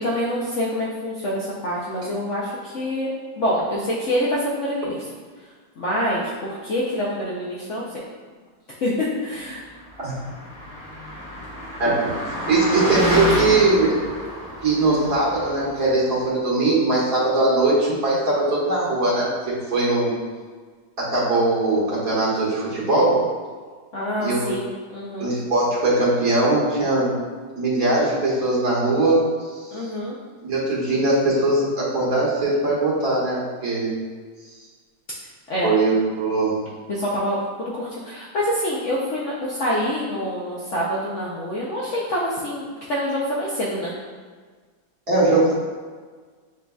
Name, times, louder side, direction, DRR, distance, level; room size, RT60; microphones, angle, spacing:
voice 1, 0.0-3.1 3.4-5.0 5.8-7.8 8.8-9.7 13.3-13.4 23.9-25.3 29.7-30.1 35.5-35.7 36.9-43.9, equal, 65° left, -6 dB, 0.8 m, -26 dB
Car passing by, 9.9-15.9, left 1 dB, 10° left, 0.6 m, -28 dB
voice 2, 12.5-13.9 14.6-20.1 21.0-23.3 24.2-24.5 25.2-27.1 27.6-29.3 30.4-33.9 35.6-36.6 45.1-45.5, right 2 dB, 55° right, -8 dB, 1.9 m, -20 dB
7.9 x 2.7 x 2.3 m, 1.5 s
omnidirectional pair, 1.9 m